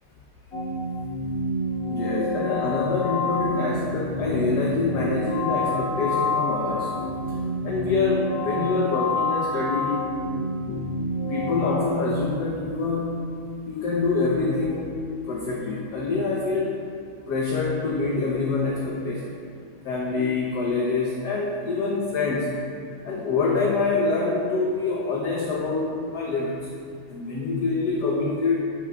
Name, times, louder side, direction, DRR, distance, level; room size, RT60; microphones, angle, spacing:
sound 1, 0.5-11.8, left 2 dB, 50° left, 0.7 m, -28 dB
voice 1, 1.9-6.9 7.3-7.4 7.6-10.1 10.7-10.9 11.3-13.2 13.7-14.9 15.2-16.9 17.3-19.4 19.8-22.6 23.0-26.7 27.1-28.6, left 3 dB, 65° left, -2 dB, 1.2 m, -25 dB
12.0 x 6.6 x 2.3 m, 2.3 s
omnidirectional pair, 2.3 m